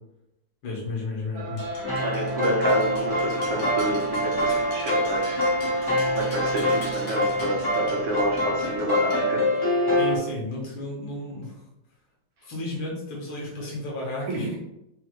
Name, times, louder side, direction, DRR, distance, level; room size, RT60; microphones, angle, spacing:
voice 1, 0.6-1.7 10.0-11.6 12.4-14.6, left 2 dB, 85° left, -2 dB, 2.0 m, -33 dB
sound 1, 1.3-8.9, right 2 dB, 65° right, 1.2 m, -35 dB
sound 2, 1.6-9.7, left 2 dB, 70° left, 1.6 m, -44 dB
sound 3, 1.8-10.2, left 1 dB, 15° left, 0.8 m, -25 dB
voice 2, 2.0-5.4 6.1-9.4 14.3-14.5, right 1 dB, 80° right, -3 dB, 1.8 m, -29 dB
4.9 x 2.4 x 3.0 m, 0.86 s
omnidirectional pair, 2.1 m